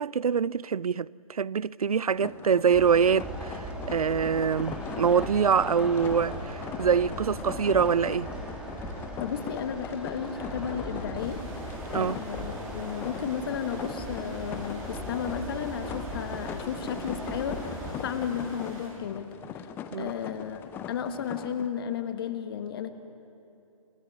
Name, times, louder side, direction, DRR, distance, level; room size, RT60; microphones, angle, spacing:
voice 1, 0.0-8.3 11.9-12.2 19.9-20.1, right 6 dB, 75° right, 0.5 m, -25 dB
sound 1, 2.1-21.7, left 8 dB, 10° left, 0.6 m, -41 dB
sound 2, 2.7-17.9, right 1 dB, 5° right, 2.7 m, -38 dB
voice 2, 9.2-11.5 11.9-19.7 20.0-20.6 20.9-22.9, left 8 dB, 40° left, 1.5 m, -33 dB
sound 3, 11.2-18.9, right 1 dB, 35° right, 6.4 m, -48 dB
28.5 x 12.5 x 9.5 m
figure-of-eight pair, 140°, 19 cm